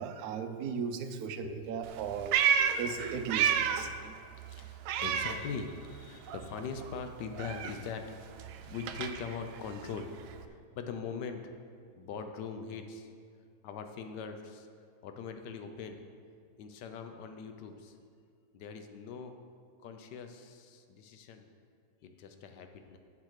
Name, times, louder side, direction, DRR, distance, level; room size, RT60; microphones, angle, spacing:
voice 1, 0.0-4.2, right 6 dB, 70° right, 8 dB, 0.9 m, -37 dB
voice 2, 1.4-1.7 2.6-2.9 3.8-3.9 4.6-10.1 10.5-11.6 12.0-13.1 13.6-14.7 15.0-16.0 16.6-17.9 18.5-19.4 19.8-21.4 22.0-23.0, left 5 dB, 65° left, 7 dB, 1.2 m, -42 dB
Meow, 1.8-4.0 4.3-6.0 6.3-10.5, right 8 dB, 90° right, 1.4 m, -32 dB
7.4 x 7.4 x 6.5 m, 2.2 s
omnidirectional pair, 2.2 m